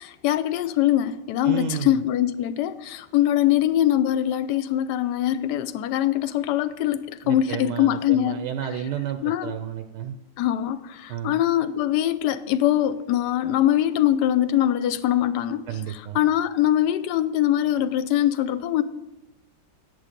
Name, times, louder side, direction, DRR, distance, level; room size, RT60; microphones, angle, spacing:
voice 1, 0.0-8.4 9.2-9.5 10.4-15.7 16.1-18.8, left 12 dB, 70° left, 13 dB, 1.1 m, -23 dB
voice 2, 1.4-2.0 7.2-10.2 11.1-11.4 15.7-16.2, right 9 dB, 75° right, 8 dB, 1.2 m, -31 dB
10.0 x 7.6 x 5.2 m, 0.98 s
omnidirectional pair, 2.0 m